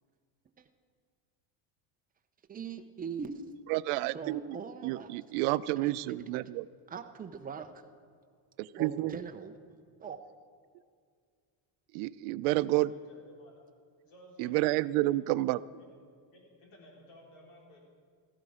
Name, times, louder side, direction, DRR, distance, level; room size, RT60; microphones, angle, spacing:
voice 1, 2.5-3.4 4.1-5.1 5.8-6.1 6.9-7.7 8.8-9.5 10.0-10.2, right 6 dB, 20° right, 6 dB, 0.6 m, -41 dB
voice 2, 3.7-4.6 4.8-6.7 8.6-9.2 11.9-12.9 14.4-15.6, right 18 dB, 85° right, 17 dB, 0.6 m, -30 dB
voice 3, 12.6-13.6 14.1-14.7 15.3-15.5 15.8-15.9 16.3-17.8, left 1 dB, 70° left, -1 dB, 4.2 m, -55 dB
15.5 x 14.0 x 4.9 m, 2.1 s
cardioid pair, 155°, 49 cm